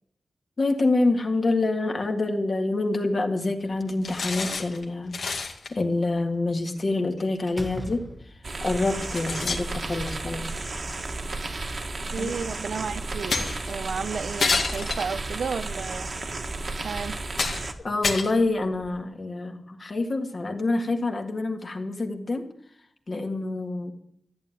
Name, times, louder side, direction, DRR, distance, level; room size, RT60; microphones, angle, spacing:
voice 1, 0.6-10.6 12.2-12.3 17.8-22.5 23.1-23.9, left 2 dB, 40° left, 3 dB, 1.8 m, -27 dB
Slam, 3.6-4.7 6.8-7.0 7.5-8.7, equal, ahead, 1.1 m, -40 dB
sound 1, 4.0-4.8 5.1-5.7 7.2-7.3 8.2-8.3 9.0-10.3 11.5-11.6 13.3-13.8 14.4-15.5 16.2-16.3 16.9-17.0 17.3-17.7 18.0-19.0, left 4 dB, 70° left, 2.1 m, -29 dB
sound 2, 8.4-17.7, right 2 dB, 40° right, 1.4 m, -33 dB
voice 2, 12.1-16.1 16.8-17.2, right 5 dB, 75° right, 14 dB, 0.6 m, -32 dB
14.0 x 9.5 x 9.2 m, 0.70 s
wide cardioid pair, 150°, 0 cm